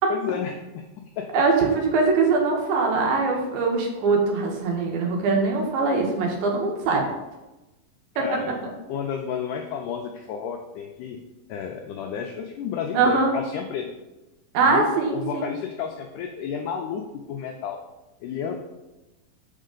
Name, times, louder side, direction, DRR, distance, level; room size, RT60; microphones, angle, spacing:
voice 1, 0.1-0.8 1.2-1.4 3.3-3.4 8.2-8.6 8.9-11.2 11.5-13.9 14.6-17.0 17.3-17.8 18.2-18.5, left 7 dB, 85° left, 3 dB, 1.8 m, -31 dB
voice 2, 1.3-7.0 8.2-8.3 12.9-13.3 14.5-15.5, right 4 dB, 80° right, 1 dB, 3.0 m, -22 dB
6.4 x 5.8 x 3.8 m, 1.0 s
omnidirectional pair, 4.2 m